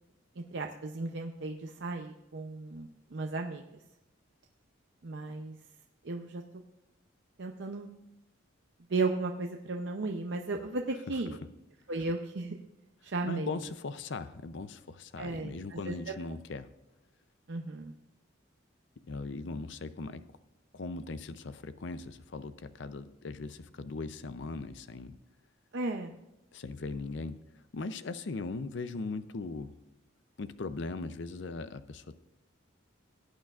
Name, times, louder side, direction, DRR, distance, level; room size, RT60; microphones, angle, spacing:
voice 1, 0.4-3.6 5.0-5.6 6.0-6.6 7.4-7.9 8.9-11.4 11.9-12.6 13.0-13.5 15.2-16.1 17.5-17.9 25.7-26.2, right 3 dB, 60° right, 3 dB, 0.6 m, -35 dB
voice 2, 13.2-16.7 19.1-20.3 20.7-25.2 26.5-29.8 30.4-32.2, left 3 dB, 60° left, 12 dB, 0.5 m, -39 dB
17.5 x 9.0 x 2.4 m, 0.95 s
head